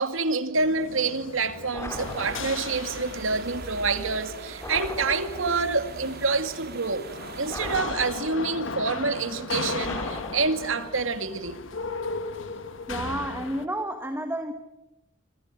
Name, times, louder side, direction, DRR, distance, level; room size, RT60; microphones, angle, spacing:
voice 1, 0.0-7.0 7.4-11.6, right 4 dB, 85° right, 2.3 m, -27 dB
sound 1, 0.6-13.7, left 3 dB, 75° left, 1.8 m, -37 dB
sound 2, 1.7-2.8 4.6-5.7 7.5-8.6 9.8-10.9, left 1 dB, 15° left, 4.5 m, -38 dB
sound 3, 1.9-7.8, right 4 dB, 50° right, 3.2 m, -43 dB
voice 2, 12.9-14.5, right 1 dB, 10° right, 1.6 m, -30 dB
26.5 x 26.0 x 7.7 m
head